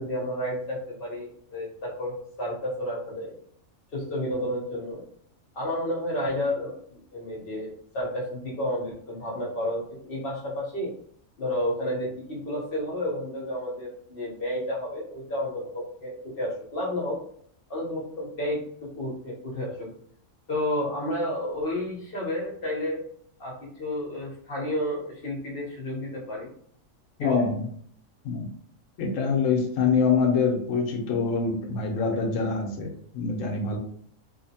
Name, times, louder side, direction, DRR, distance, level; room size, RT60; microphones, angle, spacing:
voice 1, 0.0-3.3 3.9-5.0 5.5-10.9 11.4-17.2 17.7-19.9 20.5-23.0 23.4-26.5 27.2-27.5, left 1 dB, 45° left, -4 dB, 1.0 m, -31 dB
voice 2, 27.2-27.6 28.2-28.5 29.0-33.8, left 5 dB, 70° left, 2 dB, 1.0 m, -25 dB
3.0 x 2.0 x 2.7 m, 0.63 s
omnidirectional pair, 1.4 m